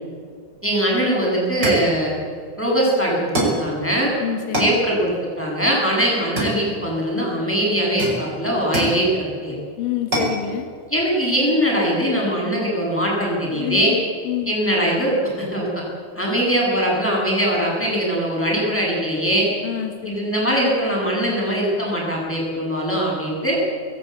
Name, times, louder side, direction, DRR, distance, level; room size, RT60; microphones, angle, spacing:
voice 1, 0.6-2.1 2.6-4.1 4.6-5.1 5.4-9.6 10.9-13.9 14.5-15.8 16.1-19.5 20.1-23.6, equal, 5° left, -4 dB, 7.6 m, -21 dB
sound 1, 0.9-1.1 1.6-2.0 3.3-3.7 4.5-4.8 6.4-7.0 8.0-9.0 10.1-10.4, right 1 dB, 25° right, 6.1 m, -24 dB
voice 2, 4.2-4.8 9.8-10.7 13.5-14.5 19.6-20.2, left 11 dB, 65° left, 5 dB, 3.1 m, -27 dB
20.5 x 19.5 x 8.1 m, 2.2 s
omnidirectional pair, 4.5 m